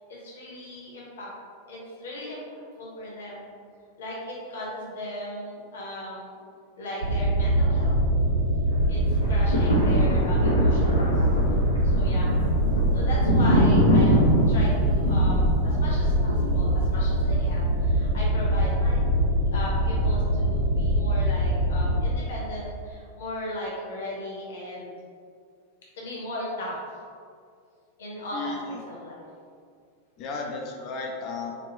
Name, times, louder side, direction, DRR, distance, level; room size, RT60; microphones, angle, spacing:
voice 1, 0.1-1.3 1.6-3.5 4.0-6.3 6.8-7.9 8.9-11.0 11.8-12.3 12.9-19.0 19.5-24.9 26.0-26.8 28.0-28.6 28.8-29.3 30.2-30.3, left 1 dB, 60° left, -4 dB, 1.1 m, -37 dB
sound 1, 7.0-22.0, right 1 dB, 70° right, 0.6 m, -23 dB
sound 2, 9.1-17.4 17.9-18.0, equal, 80° left, 0.6 m, -25 dB
voice 2, 28.3-28.8 30.2-31.5, left 3 dB, 40° left, 0 dB, 0.5 m, -34 dB
4.2 x 2.5 x 3.1 m, 2.2 s
figure-of-eight pair, 90°, 0 cm